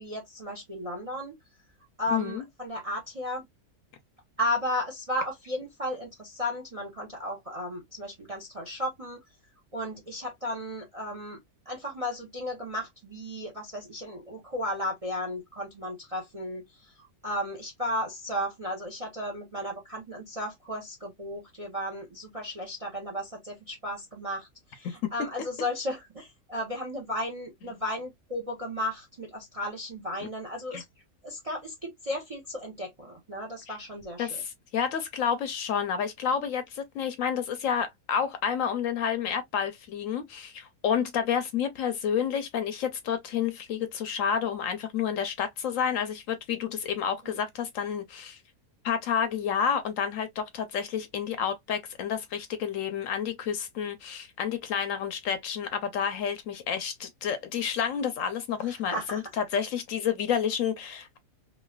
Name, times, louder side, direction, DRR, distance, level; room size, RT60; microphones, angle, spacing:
voice 1, 0.0-1.4 2.0-3.5 4.4-9.2 9.7-11.4 11.7-30.8 31.2-34.4 47.2-47.3 58.6-59.2, left 1 dB, 35° right, 0.5 m, -34 dB
voice 2, 2.1-2.4 30.7-30.8 33.7-33.8 34.2-48.4 48.8-61.2, left 7 dB, 70° left, 0.8 m, -30 dB
3.1 x 2.6 x 2.2 m
omnidirectional pair, 1.6 m